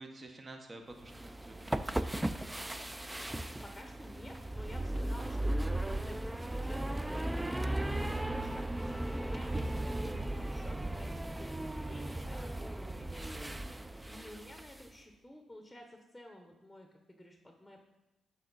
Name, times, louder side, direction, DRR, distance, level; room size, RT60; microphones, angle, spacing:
voice 1, 0.0-2.3, right 2 dB, 35° right, 4 dB, 0.9 m, -50 dB
sound 1, 1.0-14.9, right 1 dB, 15° right, 0.3 m, -36 dB
voice 2, 3.6-13.6 14.1-17.8, left 1 dB, 5° left, 3 dB, 0.9 m, -52 dB
7.5 x 4.6 x 4.0 m, 0.99 s
supercardioid pair, 60°, 0 cm